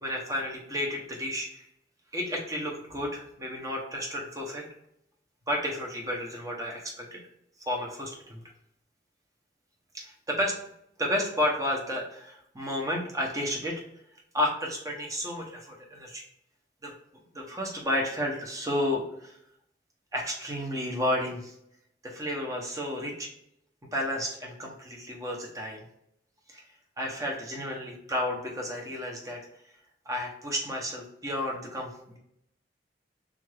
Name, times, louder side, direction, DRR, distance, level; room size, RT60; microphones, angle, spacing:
voice 1, 0.0-1.7 2.1-4.7 5.5-7.2 7.7-8.4 9.9-10.6 11.0-13.8 14.3-16.2 16.8-16.9 17.3-19.4 20.1-21.5 22.0-23.3 23.9-25.9 26.5-26.6 27.0-29.4 30.1-32.2, left 1 dB, 20° right, -1 dB, 0.7 m, -32 dB
3.6 x 2.5 x 3.2 m, 0.77 s
head